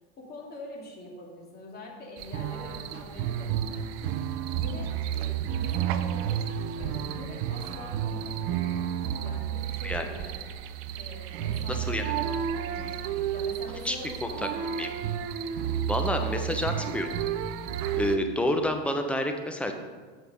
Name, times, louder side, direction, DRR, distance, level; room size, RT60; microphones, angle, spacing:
voice 1, 0.2-3.9 4.5-6.4 6.7-10.3 10.9-13.0 13.3-14.8 16.1-17.4, left 2 dB, 30° left, -1 dB, 2.4 m, -44 dB
sound 1, 2.2-18.2, right 9 dB, 45° right, 0.6 m, -31 dB
voice 2, 11.7-12.0 13.8-14.0 14.8-14.9 15.9-17.1 17.9-19.7, left 1 dB, 5° left, 5 dB, 0.9 m, -28 dB
7.8 x 5.7 x 5.4 m, 1.5 s
hypercardioid pair, 95°, 33 cm